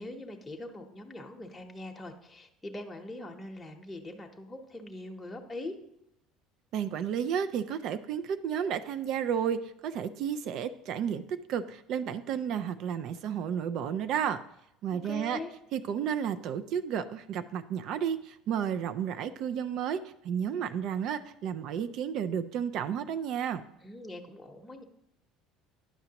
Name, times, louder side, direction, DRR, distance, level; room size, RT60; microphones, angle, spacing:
voice 1, 0.0-5.7 14.9-15.5 23.8-24.8, left 1 dB, 10° left, 1 dB, 0.9 m, -42 dB
voice 2, 6.7-11.2 11.5-14.4 14.8-15.4 15.7-23.6, right 8 dB, 60° right, 12 dB, 0.4 m, -32 dB
10.0 x 5.7 x 2.9 m, 0.79 s
supercardioid pair, 80°, 0 cm